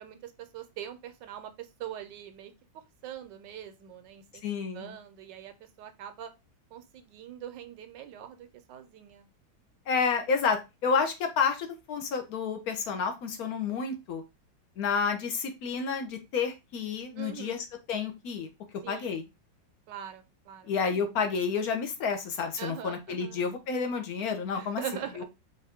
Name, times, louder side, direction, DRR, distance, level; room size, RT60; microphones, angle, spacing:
voice 1, 0.0-4.4 4.7-6.3 6.7-9.3 17.2-17.6 18.8-19.3 19.9-20.7 22.6-23.4 24.5-25.2, right 10 dB, 80° right, 9 dB, 1.3 m, -43 dB
voice 2, 4.4-5.0 9.9-14.2 14.8-18.5 18.9-19.2 20.6-24.8 25.2-25.3, left 5 dB, 65° left, 6 dB, 1.1 m, -30 dB
4.5 x 2.5 x 3.5 m, 0.25 s
omnidirectional pair, 2.0 m